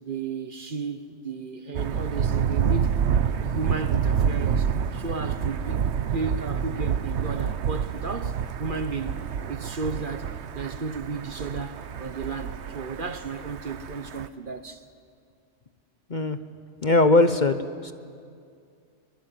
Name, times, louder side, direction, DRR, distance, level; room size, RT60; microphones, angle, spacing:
voice 1, 0.0-3.0 3.4-9.2 9.5-14.8, right 4 dB, 45° right, 1.2 m, -34 dB
Thunder, 1.7-14.3, right 7 dB, 65° right, 1.1 m, -28 dB
voice 2, 16.8-17.9, left 2 dB, 40° left, 1.0 m, -20 dB
24.0 x 22.5 x 9.2 m
omnidirectional pair, 1.3 m